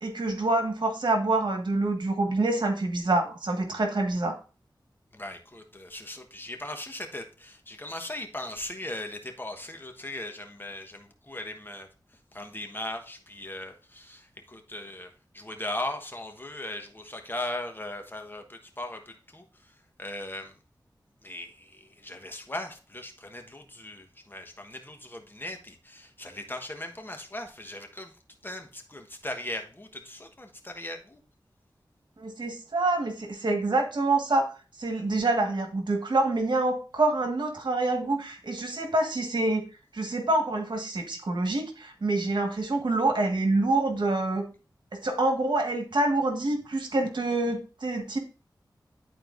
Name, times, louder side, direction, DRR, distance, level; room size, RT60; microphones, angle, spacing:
voice 1, 0.0-4.4 32.2-34.5 34.8-39.6 39.9-44.4 45.0-48.2, right 2 dB, 70° right, 4 dB, 1.5 m, -26 dB
voice 2, 5.1-11.9 12.3-19.4 20.0-20.5 21.2-28.1 28.4-31.2, left 1 dB, 25° left, 5 dB, 1.2 m, -38 dB
11.0 x 4.5 x 2.5 m, 0.34 s
cardioid pair, 50°, 8 cm